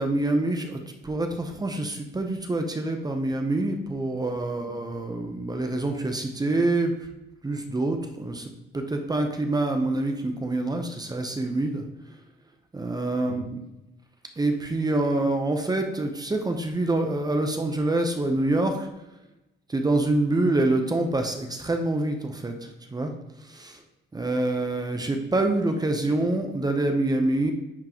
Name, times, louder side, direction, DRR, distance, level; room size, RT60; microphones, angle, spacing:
voice 1, 0.0-6.9 7.4-11.8 12.7-13.6 14.4-18.9 19.7-23.1 23.4-23.8 24.1-27.5, right 2 dB, 20° right, 4 dB, 0.8 m, -26 dB
10.5 x 3.8 x 3.0 m, 0.96 s
cardioid pair, 90°, 20 cm